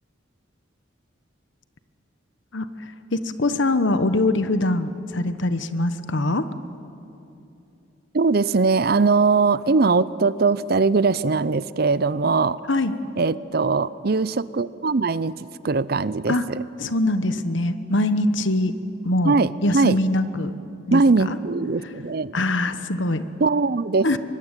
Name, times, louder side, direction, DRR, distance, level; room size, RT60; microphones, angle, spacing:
voice 1, 2.5-6.5 12.7-12.9 16.3-16.5 16.8-18.7 19.0-20.5 20.9-21.4 22.3-23.2 24.0-24.2, left 2 dB, 75° left, 11 dB, 1.2 m, -23 dB
voice 2, 8.1-12.6 13.2-16.3 19.2-20.0 20.9-22.3 23.4-24.2, right 4 dB, 50° right, 18 dB, 0.6 m, -21 dB
24.0 x 21.0 x 9.0 m, 2.7 s
head